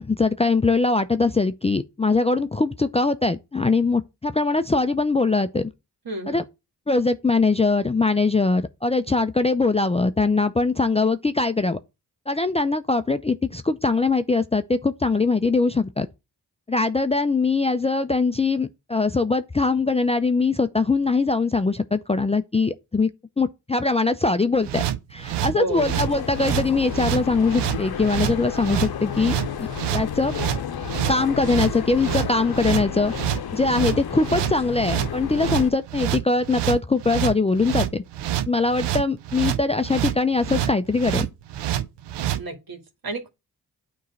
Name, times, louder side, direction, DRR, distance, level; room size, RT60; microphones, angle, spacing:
voice 1, 0.0-5.7 6.3-6.4 6.9-11.8 12.3-16.1 16.7-23.1 23.4-24.8 25.1-30.3 31.1-33.1 33.5-38.0 38.5-41.3, left 3 dB, 15° left, 0.4 m, -22 dB
voice 2, 6.1-6.4 25.5-25.9 42.4-43.3, right 2 dB, 60° right, 1.9 m, -31 dB
sound 1, 24.6-42.4, right 12 dB, 85° right, 0.6 m, -27 dB
sound 2, 25.8-35.7, left 9 dB, 60° left, 0.8 m, -32 dB
9.3 x 3.2 x 4.1 m
supercardioid pair, 40°, 41 cm